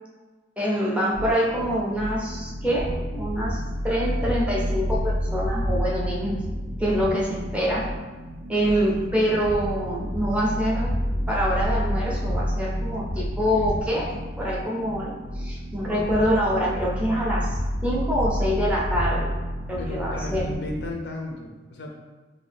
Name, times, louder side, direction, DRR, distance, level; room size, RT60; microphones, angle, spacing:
voice 1, 0.6-6.4 6.8-7.9 8.5-14.1 14.4-19.3 19.7-20.4, equal, 5° right, -5 dB, 0.5 m, -25 dB
sound 1, 1.1-20.9, equal, 75° right, 0.5 m, -29 dB
voice 2, 19.8-21.9, left 2 dB, 65° left, 1 dB, 0.5 m, -34 dB
2.7 x 2.4 x 3.2 m, 1.3 s
head